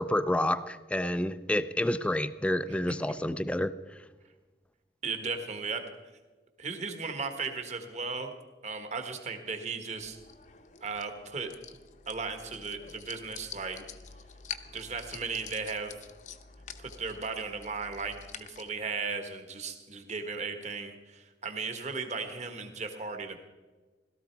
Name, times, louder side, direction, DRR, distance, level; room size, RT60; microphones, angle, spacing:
voice 1, 0.0-3.7, left 1 dB, 5° left, 13 dB, 0.4 m, -29 dB
voice 2, 5.0-5.8 6.6-8.3 8.6-10.2 10.8-11.5 12.1-13.9 14.7-15.9 16.8-23.4, right 4 dB, 40° right, 6 dB, 1.6 m, -36 dB
sound 1, 10.0-18.7, left 7 dB, 45° left, 0.8 m, -47 dB
17.0 x 13.0 x 4.6 m, 1.3 s
head